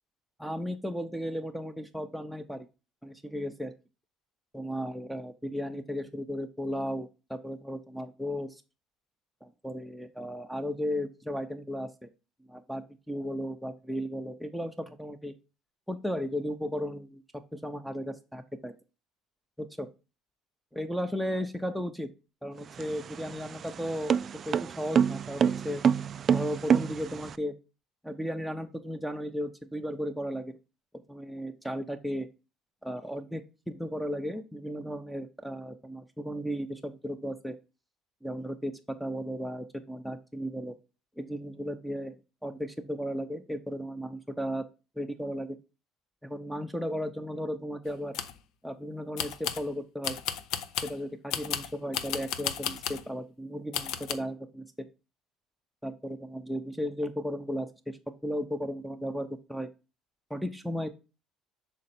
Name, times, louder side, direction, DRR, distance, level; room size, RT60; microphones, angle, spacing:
voice 1, 0.4-2.7 3.0-3.7 4.5-8.6 9.4-12.1 12.5-15.3 15.9-17.2 17.5-18.7 19.6-19.9 20.7-22.1 22.4-25.8 26.3-27.5 28.0-30.6 31.1-32.3 32.8-37.6 38.2-40.7 41.2-42.1 42.4-44.6 45.0-45.6 46.2-48.2 48.6-50.2 50.8-54.9 55.8-58.0 58.2-59.7 60.3-60.9, equal, ahead, 7 dB, 0.7 m, -35 dB
sound 1, 22.6-27.4, right 7 dB, 40° right, 0.3 m, -27 dB
sound 2, 47.9-48.4 49.2-49.7 50.0-51.0 51.3-53.1 53.7-54.1, left 9 dB, 75° left, 0.7 m, -33 dB
6.4 x 4.0 x 4.3 m, 0.31 s
cardioid pair, 110°, 0 cm